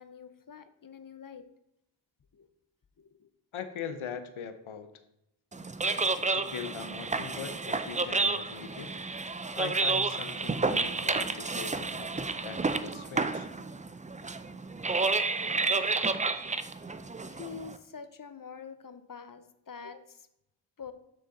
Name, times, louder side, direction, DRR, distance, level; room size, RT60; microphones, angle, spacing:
voice 1, 0.0-1.4 2.3-2.5 3.0-3.3 17.3-20.3 20.8-20.9, left 6 dB, 45° left, 11 dB, 0.7 m, -46 dB
voice 2, 3.5-4.9 6.3-8.9 9.6-13.5, left 7 dB, 75° left, 10 dB, 0.7 m, -41 dB
sound 1, 5.5-17.8, right 3 dB, 15° right, 0.4 m, -30 dB
6.3 x 6.0 x 4.0 m, 0.84 s
cardioid pair, 45°, 49 cm